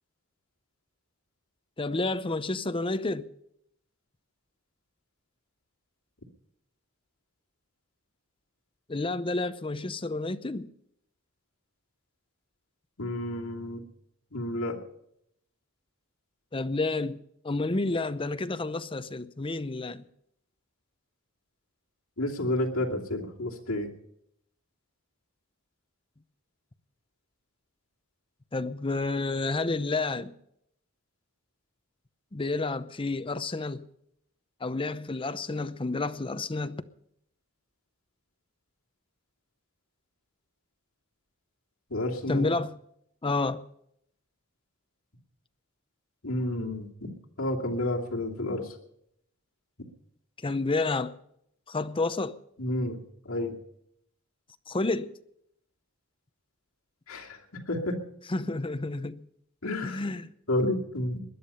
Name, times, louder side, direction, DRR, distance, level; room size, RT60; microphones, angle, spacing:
voice 1, 1.8-3.3 8.9-10.7 16.5-20.0 28.5-30.3 32.3-33.9 34.6-36.8 42.3-42.8 43.2-43.6 50.4-51.1 51.7-52.4 54.7-55.1 58.3-59.3 59.8-60.3, left 3 dB, 25° left, 0.7 m, -30 dB
voice 2, 13.0-13.8 14.3-14.8 22.2-23.9 41.9-42.5 46.2-48.8 52.6-53.0 53.2-53.6 57.1-58.0 59.6-60.0 60.5-61.2, left 1 dB, 75° left, 2.7 m, -30 dB
20.0 x 11.0 x 5.6 m
head